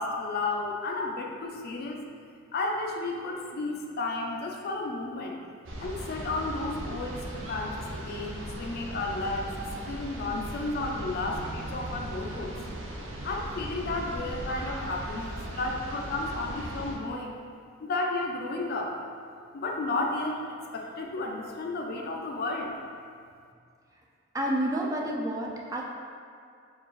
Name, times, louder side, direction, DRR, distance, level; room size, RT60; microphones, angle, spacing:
voice 1, 0.0-2.0 2.5-5.4 5.8-9.5 9.8-12.6 13.2-17.4 17.8-19.0 19.5-22.7, left 2 dB, 50° left, 1 dB, 0.4 m, -32 dB
sound 1, 5.7-17.0, right 1 dB, 70° right, 0.5 m, -38 dB
voice 2, 24.3-25.8, right 1 dB, 15° right, -2 dB, 0.3 m, -29 dB
4.5 x 2.4 x 3.1 m, 2.2 s
head